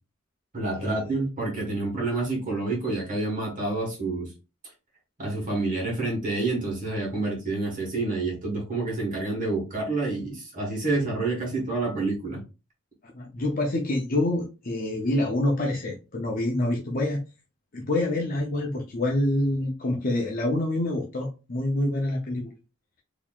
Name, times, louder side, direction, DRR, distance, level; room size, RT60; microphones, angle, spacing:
voice 1, 0.5-4.3 5.2-12.4, right 2 dB, 40° right, -1 dB, 1.4 m, -28 dB
voice 2, 13.1-17.2 17.7-22.5, left 1 dB, 40° left, 0 dB, 0.6 m, -26 dB
3.9 x 2.9 x 2.4 m, 0.30 s
head